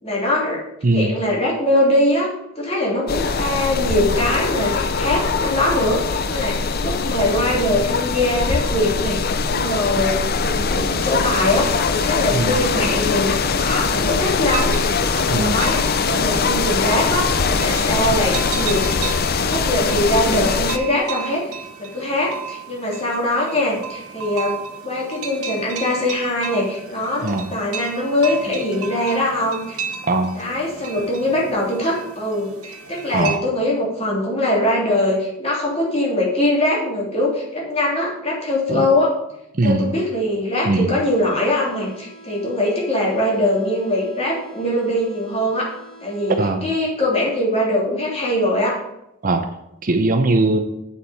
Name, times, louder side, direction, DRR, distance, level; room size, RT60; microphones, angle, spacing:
voice 1, 0.0-0.6 0.9-2.3 2.6-10.2 10.4-18.9 19.3-24.6 24.8-29.8 30.3-39.1 39.6-45.7 46.0-46.4 46.6-48.8, left 1 dB, 30° left, -4 dB, 3.0 m, -22 dB
voice 2, 0.8-1.1 12.3-12.6 15.3-15.6 27.2-27.5 30.0-30.4 33.1-33.4 38.7-38.9 39.5-39.9 40.7-40.9 46.4-46.7 49.2-49.5 49.8-50.6, right 2 dB, 40° right, 7 dB, 0.6 m, -20 dB
sound 1, 3.1-20.8, left 4 dB, 45° left, 0.6 m, -21 dB
sound 2, 14.1-33.4, right 6 dB, 80° right, 1.5 m, -34 dB
sound 3, 41.0-47.0, right 1 dB, 5° left, 1.4 m, -45 dB
8.5 x 7.2 x 5.6 m, 0.85 s
head